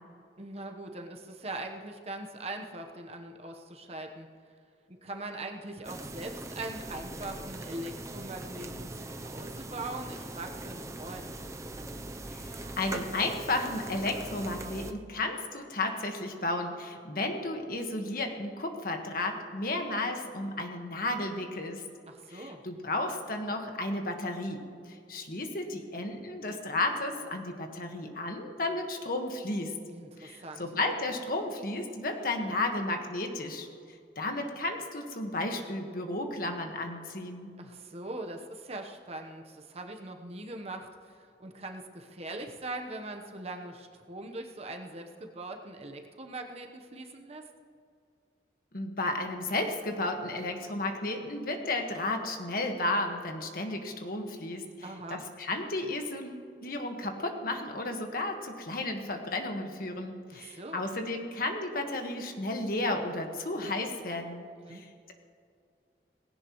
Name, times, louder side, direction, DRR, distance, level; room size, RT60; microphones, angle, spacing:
voice 1, 0.4-4.3 5.0-11.3 22.1-22.6 29.9-30.6 37.6-47.4 54.8-55.2 60.3-60.9 64.7-64.8, right 2 dB, 35° right, 4 dB, 1.0 m, -41 dB
sound 1, 5.8-14.9, right 2 dB, 15° right, 0.6 m, -41 dB
voice 2, 12.3-21.8 22.3-29.7 30.2-33.7 34.1-37.5 48.7-65.1, left 2 dB, 55° left, 4 dB, 1.5 m, -33 dB
18.5 x 16.5 x 3.1 m, 2.3 s
head